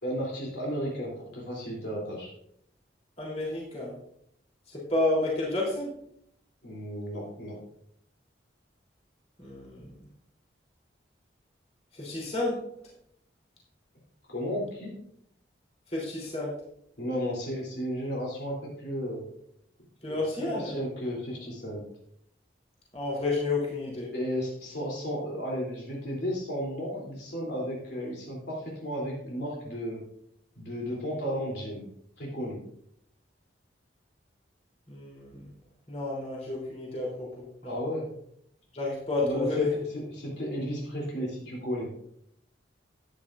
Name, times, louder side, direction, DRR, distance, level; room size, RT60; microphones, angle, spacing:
voice 1, 0.0-2.3 6.6-7.6 14.3-14.9 17.0-19.2 20.1-21.8 24.1-30.0 30.6-31.8 32.2-32.6 37.7-38.1 39.2-39.6 39.9-41.9, equal, 65° left, -3 dB, 3.1 m, -33 dB
voice 2, 3.2-3.9 4.7-5.9 9.4-9.8 11.9-12.6 15.9-16.5 20.0-20.7 22.9-24.1 34.9-35.5 35.9-37.7 38.7-39.7, left 2 dB, 35° left, -4 dB, 3.2 m, -30 dB
13.0 x 9.5 x 2.5 m, 0.72 s
head